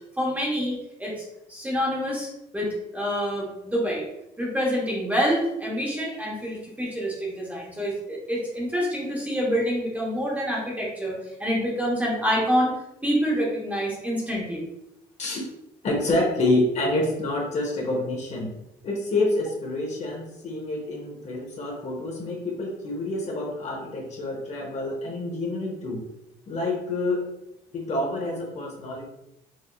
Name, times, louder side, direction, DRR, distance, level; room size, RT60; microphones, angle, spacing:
voice 1, 0.2-2.3 2.5-4.0 4.4-12.7 13.0-14.6, equal, 10° right, -3 dB, 1.1 m, -27 dB
voice 2, 15.8-18.5 18.8-26.1 26.5-27.3 27.7-29.1, left 2 dB, 45° left, -1 dB, 0.9 m, -27 dB
4.7 x 2.6 x 2.4 m, 0.84 s
cardioid pair, 110°, 17 cm